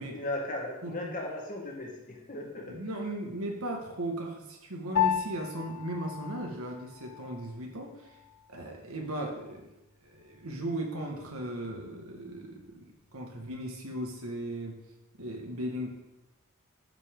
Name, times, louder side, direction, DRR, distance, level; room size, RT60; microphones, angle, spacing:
voice 1, 0.1-2.7, left 1 dB, 40° left, 0 dB, 1.6 m, -36 dB
voice 2, 0.8-1.1 2.6-8.2 8.5-9.7 10.0-12.9 13.1-14.8 15.2-15.9, right 1 dB, 80° right, 1 dB, 1.8 m, -37 dB
Piano, 5.0-14.6, left 9 dB, 75° left, 0.8 m, -37 dB
11.0 x 5.5 x 3.8 m, 0.94 s
head